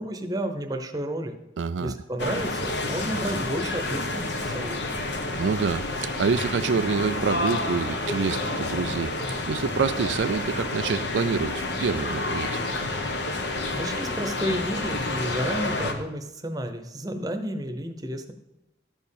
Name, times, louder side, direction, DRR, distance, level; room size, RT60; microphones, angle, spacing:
voice 1, 0.0-1.4 1.8-5.0 13.3-18.3, right 1 dB, 20° right, 5 dB, 0.9 m, -32 dB
voice 2, 1.6-1.9 5.3-9.1 9.5-12.6, right 5 dB, 80° right, 11 dB, 0.4 m, -27 dB
sound 1, 2.2-15.9, left 2 dB, 70° left, 1.2 m, -29 dB
13.0 x 4.4 x 7.2 m, 0.95 s
head